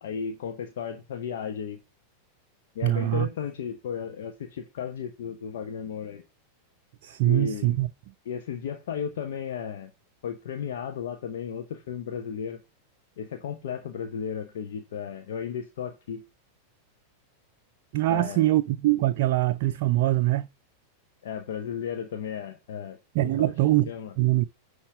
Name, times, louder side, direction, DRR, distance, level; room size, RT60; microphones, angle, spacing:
voice 1, 0.0-1.8 2.7-6.2 7.2-7.8 8.2-9.9 10.2-12.6 13.2-16.2 18.1-18.5 21.2-23.5 23.9-24.1, left 7 dB, 60° left, 1.0 m, -34 dB
voice 2, 2.8-3.3 7.0-7.9 17.9-20.5 23.1-23.9 24.2-24.4, right 16 dB, 50° right, 0.4 m, -23 dB
9.9 x 3.7 x 6.5 m
figure-of-eight pair, 90°, 0 cm